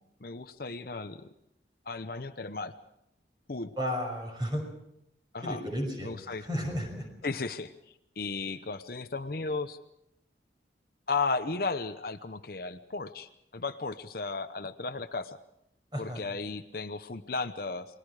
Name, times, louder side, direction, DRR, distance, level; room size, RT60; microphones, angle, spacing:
voice 1, 0.2-1.3 1.9-2.7 3.5-3.7 5.3-5.6 6.0-6.5 7.2-7.7 8.2-9.8 11.1-15.4 16.0-17.9, left 3 dB, 55° left, 9 dB, 0.8 m, -34 dB
voice 2, 3.8-4.6 5.4-7.1 15.9-16.2, equal, 25° right, 3 dB, 6.1 m, -33 dB
29.0 x 21.0 x 4.9 m, 0.78 s
head